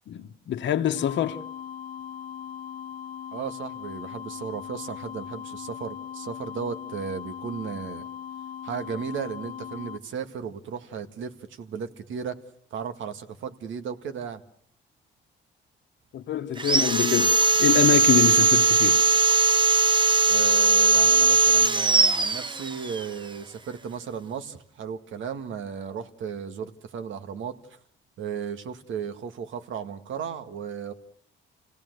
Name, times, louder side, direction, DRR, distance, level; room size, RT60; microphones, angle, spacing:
voice 1, 0.1-1.4 16.1-19.0, left 10 dB, 65° left, 1.2 m, -25 dB
sound 1, 0.9-10.0, left 9 dB, 45° left, 1.2 m, -39 dB
voice 2, 3.3-8.1 8.6-12.4 12.7-14.4 20.3-27.6 28.2-30.9, right 7 dB, 75° right, 2.0 m, -35 dB
Sawing, 16.6-23.0, right 3 dB, 25° right, 1.0 m, -20 dB
28.0 x 17.5 x 8.0 m
cardioid pair, 90°, 20 cm